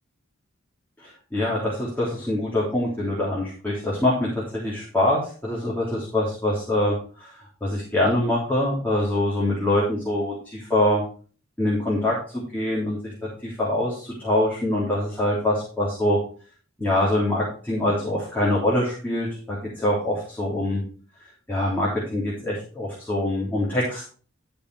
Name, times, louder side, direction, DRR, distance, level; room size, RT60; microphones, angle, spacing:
voice 1, 1.0-11.0 11.6-13.1 13.4-16.2 16.8-20.8 21.2-24.0, left 1 dB, 10° left, -7 dB, 3.6 m, -24 dB
12.5 x 5.5 x 4.9 m, 0.40 s
head